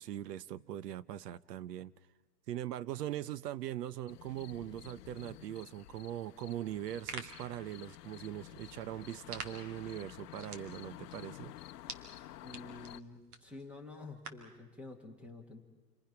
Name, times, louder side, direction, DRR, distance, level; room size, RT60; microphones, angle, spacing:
voice 1, 0.0-1.9 2.5-11.5, right 12 dB, 85° right, 0.8 m, -41 dB
sound 1, 4.1-13.0, left 14 dB, 80° left, 0.7 m, -51 dB
sound 2, 6.7-14.6, right 4 dB, 65° right, 2.7 m, -50 dB
voice 2, 12.4-15.6, left 2 dB, 5° right, 1.3 m, -49 dB
29.5 x 23.5 x 5.9 m
supercardioid pair, 170°, 47 cm